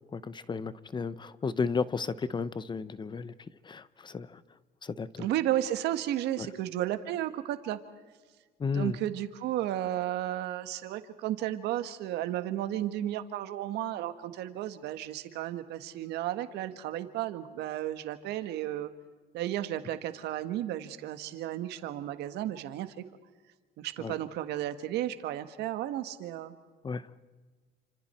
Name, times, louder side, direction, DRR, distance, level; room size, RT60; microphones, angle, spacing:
voice 1, 0.1-3.3 3.6-4.4 4.8-5.3 6.4-6.5 8.6-9.0 24.0-24.2 26.8-27.1, left 5 dB, 25° left, 16 dB, 0.9 m, -33 dB
voice 2, 5.2-7.8 8.7-18.9 19.3-23.0 23.8-26.5, right 13 dB, 85° right, 10 dB, 1.6 m, -33 dB
29.5 x 26.5 x 4.4 m, 1.4 s
cardioid pair, 110°, 17 cm